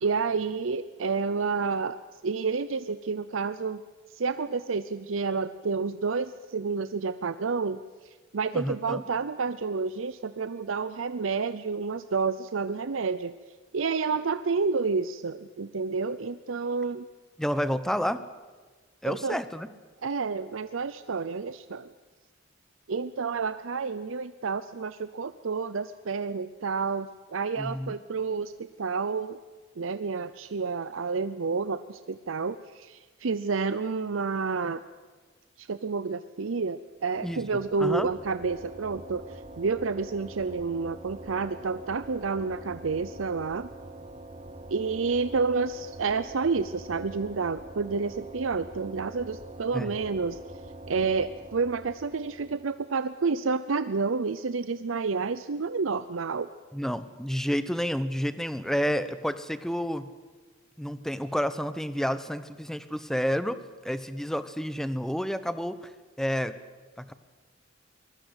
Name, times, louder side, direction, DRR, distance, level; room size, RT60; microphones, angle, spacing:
voice 1, 0.0-2.0 2.2-3.8 4.1-13.3 13.7-17.1 19.0-19.4 20.0-21.9 22.9-29.4 29.8-34.8 35.6-43.7 44.7-50.4 50.9-56.5, right 4 dB, 85° right, 12 dB, 0.6 m, -29 dB
voice 2, 8.5-9.0 17.4-18.2 19.0-19.7 27.6-28.0 37.2-37.4 37.8-38.1 49.7-49.9 56.7-60.1 60.8-65.9 66.2-66.5 67.0-67.1, equal, ahead, 12 dB, 0.9 m, -30 dB
sound 1, 37.0-52.8, right 1 dB, 30° right, 1.1 m, -45 dB
23.5 x 20.0 x 8.1 m, 1.3 s
head